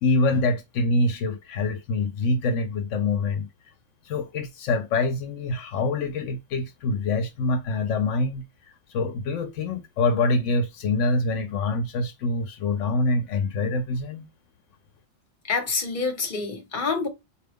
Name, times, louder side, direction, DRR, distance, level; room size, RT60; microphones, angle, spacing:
voice 1, 0.0-3.5 4.1-14.3, left 3 dB, 80° left, 0.9 m, -25 dB
voice 2, 15.5-17.1, left 4 dB, 45° left, 1.2 m, -27 dB
4.3 x 2.3 x 3.5 m
omnidirectional pair, 1.2 m